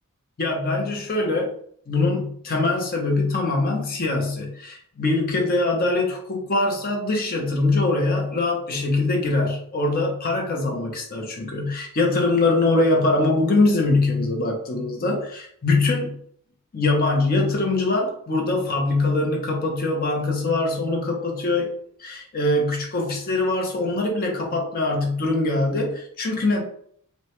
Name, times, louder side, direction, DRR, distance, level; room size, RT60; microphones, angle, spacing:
voice 1, 0.4-1.5 1.9-16.2 16.7-21.7 22.0-26.6, left 2 dB, 40° left, 1 dB, 0.5 m, -23 dB
2.1 x 2.1 x 2.8 m, 0.63 s
head